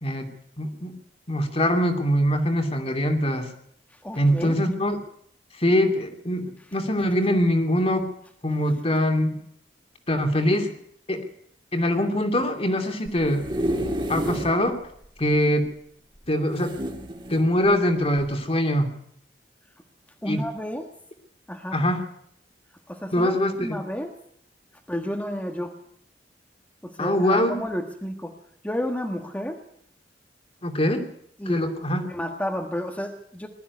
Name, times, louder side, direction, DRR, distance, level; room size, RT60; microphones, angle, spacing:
voice 1, 0.6-0.9 1.3-3.5 4.2-5.0 5.6-8.1 8.4-9.4 10.1-10.7 11.1-11.2 11.7-13.5 14.1-14.8 15.2-15.7 16.3-16.8 17.3-18.9 20.3-20.4 21.7-22.1 23.1-23.8 27.0-27.6 30.6-31.1 31.5-32.1, equal, 35° left, 5 dB, 2.7 m, -23 dB
voice 2, 4.0-4.6 20.2-20.9 21.5-21.8 22.9-23.3 23.6-24.1 24.9-25.8 26.8-28.3 28.6-29.6 31.4-31.7 32.1-33.5, left 1 dB, 10° left, 3 dB, 1.5 m, -31 dB
sound 1, 13.1-14.6 15.0-15.1 15.3-15.4 16.6-17.5 18.2-18.3, right 1 dB, 25° right, 2.8 m, -29 dB
20.5 x 13.5 x 9.5 m, 0.67 s
head